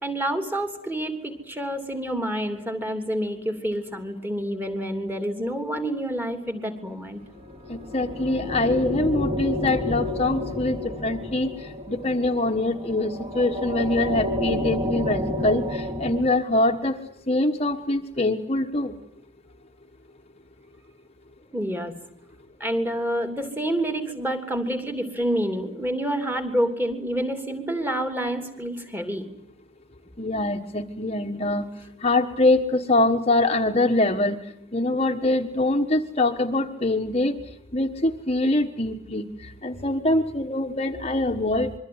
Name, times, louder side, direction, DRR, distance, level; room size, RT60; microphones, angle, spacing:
voice 1, 0.0-7.2 21.5-21.9 22.6-29.3, right 1 dB, 10° right, 7 dB, 3.0 m, -28 dB
sound 1, 7.4-16.2, left 1 dB, 30° right, 3.9 m, -30 dB
voice 2, 7.7-11.5 11.9-16.9 17.3-18.9 30.2-31.7 32.0-34.4 34.7-37.3 37.7-39.3 39.6-41.7, left 2 dB, 30° left, 5 dB, 1.4 m, -24 dB
26.0 x 23.5 x 9.7 m, 0.72 s
head